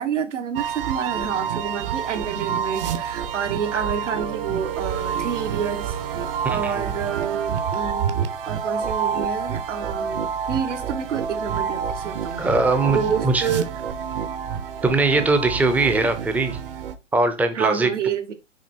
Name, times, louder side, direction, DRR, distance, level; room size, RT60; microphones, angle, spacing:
voice 1, 0.0-6.0 6.5-12.5 12.9-13.8 17.5-18.3, right 7 dB, 70° right, 1.5 m, -28 dB
sound 1, 0.6-17.0, right 7 dB, 45° right, 1.1 m, -28 dB
voice 2, 6.4-6.9 12.4-13.5 14.8-16.6 17.1-17.9, right 3 dB, 5° right, 0.6 m, -21 dB
6.3 x 4.4 x 4.3 m
hypercardioid pair, 125°, 37 cm